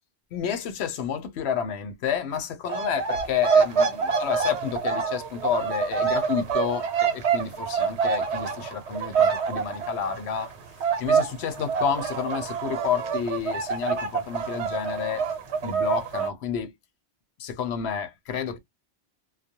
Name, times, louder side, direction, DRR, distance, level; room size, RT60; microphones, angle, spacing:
voice 1, 0.3-10.5 11.0-15.3 15.6-16.7 17.4-18.6, left 7 dB, 70° left, 0.9 m, -30 dB
sound 1, 2.7-10.5 10.8-16.3, right 6 dB, 75° right, 0.9 m, -26 dB
2.3 x 2.1 x 2.7 m
omnidirectional pair, 1.2 m